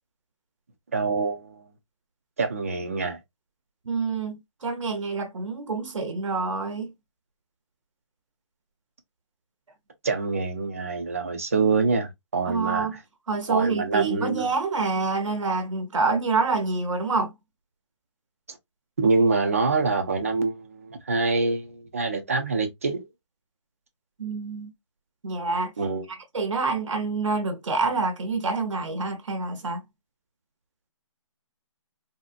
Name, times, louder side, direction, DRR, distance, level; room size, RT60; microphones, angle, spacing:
voice 1, 0.9-1.6 2.4-3.2 10.0-12.9 13.5-14.5 19.0-23.1 25.8-26.1, right 4 dB, 25° right, 0.5 m, -25 dB
voice 2, 3.8-6.9 12.5-13.0 13.3-17.3 24.2-24.7 25.2-25.7 26.1-29.8, right 4 dB, 70° right, 0.8 m, -27 dB
3.8 x 2.1 x 2.4 m
hypercardioid pair, 175°, 17 cm